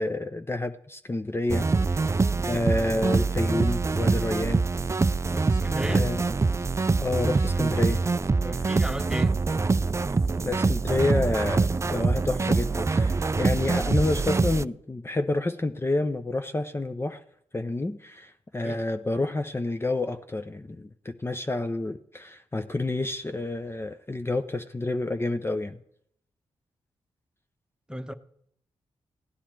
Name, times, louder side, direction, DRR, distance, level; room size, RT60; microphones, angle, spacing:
voice 1, 0.0-2.1 2.4-4.7 5.9-6.2 7.0-8.0 10.4-17.2 17.5-25.8, left 2 dB, 20° left, 0.7 m, -29 dB
sound 1, 1.5-14.6, right 4 dB, 25° right, 0.4 m, -24 dB
zoo walking, 3.9-10.7, left 1 dB, 85° left, 3.6 m, -52 dB
voice 2, 5.3-6.1 8.4-9.3 18.6-18.8 27.9-28.1, equal, 5° right, 1.1 m, -34 dB
15.5 x 10.0 x 4.6 m
supercardioid pair, 45°, 12 cm